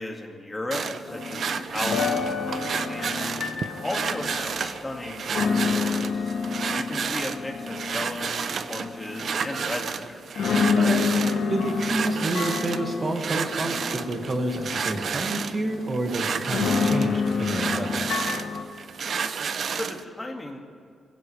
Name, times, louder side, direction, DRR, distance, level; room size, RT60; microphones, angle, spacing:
voice 1, 0.0-3.3 3.8-6.4 6.7-10.2 19.7-20.6, left 2 dB, 15° left, 1 dB, 2.1 m, -35 dB
sound 1, 0.7-20.0, right 6 dB, 50° right, 0.6 m, -31 dB
sound 2, 1.1-9.9 10.3-18.6, left 5 dB, 70° left, 2.3 m, -29 dB
voice 2, 10.7-18.0, right 2 dB, 30° right, 3 dB, 2.0 m, -29 dB
26.0 x 16.5 x 3.4 m, 2.3 s
wide cardioid pair, 145°, 0 cm